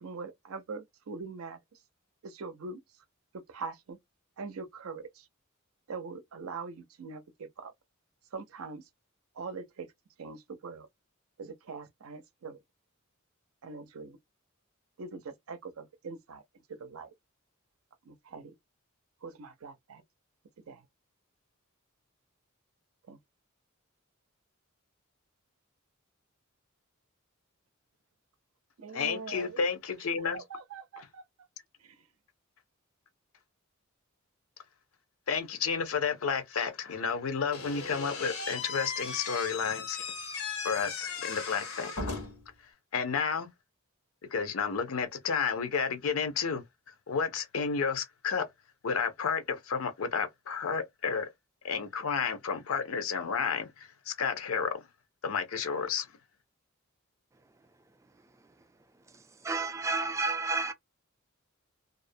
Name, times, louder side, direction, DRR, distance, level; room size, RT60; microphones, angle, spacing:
voice 1, 0.0-1.6 2.2-2.8 3.5-4.0 4.4-5.2 5.9-7.7 8.3-8.8 9.4-9.9 10.2-10.9 11.4-12.6 13.6-14.2 15.0-16.4 16.8-17.1 18.1-18.5 19.2-20.0 20.7-20.8 23.1-23.2 28.8-29.6 30.3-31.2 31.8-31.9, right 4 dB, 75° right, 0.5 m, -42 dB
voice 2, 28.9-30.4 31.0-31.1 35.3-40.0 40.6-42.1 42.9-43.5 44.3-46.6 47.1-48.5 48.8-51.3 51.6-54.7 55.2-56.1, left 6 dB, 70° left, 0.6 m, -31 dB
Slam / Squeak, 37.5-42.5, left 4 dB, 85° left, 1.0 m, -37 dB
voice 3, 59.4-60.7, right 3 dB, 15° right, 0.3 m, -30 dB
2.4 x 2.0 x 2.5 m
head